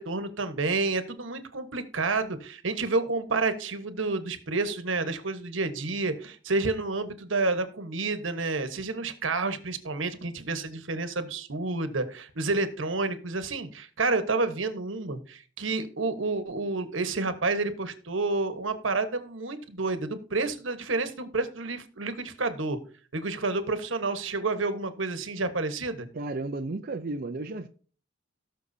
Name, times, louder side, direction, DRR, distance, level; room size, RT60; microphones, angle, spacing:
voice 1, 0.0-22.8 23.1-26.1, right 3 dB, 80° right, 9 dB, 1.3 m, -29 dB
voice 2, 26.1-27.7, right 2 dB, 50° right, 5 dB, 0.6 m, -33 dB
18.0 x 6.4 x 2.7 m, 0.41 s
head